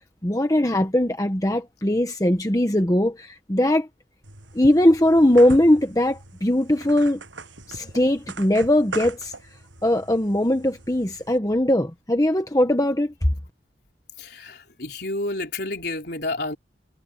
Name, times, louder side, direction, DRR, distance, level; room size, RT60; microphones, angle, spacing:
voice 1, 0.2-3.9 4.5-7.2 7.7-9.3 9.8-13.1, left 1 dB, 20° left, 1.1 m, -20 dB
sound 1, 4.2-11.4, right 3 dB, 85° right, 7.9 m, -41 dB
voice 2, 14.2-16.6, left 2 dB, 55° left, 4.4 m, -30 dB
head